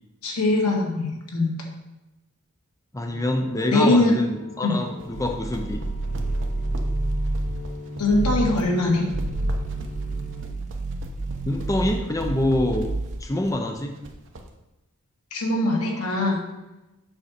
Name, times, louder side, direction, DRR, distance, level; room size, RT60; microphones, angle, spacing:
voice 1, 0.2-1.5 3.7-4.1 4.6-4.8 8.0-9.0 15.3-16.4, left 2 dB, 85° left, -1 dB, 1.9 m, -21 dB
voice 2, 2.9-5.8 11.5-12.9 13.2-13.9, left 1 dB, 15° left, 3 dB, 0.6 m, -25 dB
sound 1, 3.1-10.4, left 1 dB, 35° left, 1.8 m, -39 dB
sound 2, 4.9-14.5, right 2 dB, 60° right, 0.9 m, -41 dB
sound 3, 5.1-7.7 8.1-8.6 9.0-13.3, right 2 dB, 35° right, 0.4 m, -29 dB
7.9 x 6.0 x 4.3 m, 1.0 s
head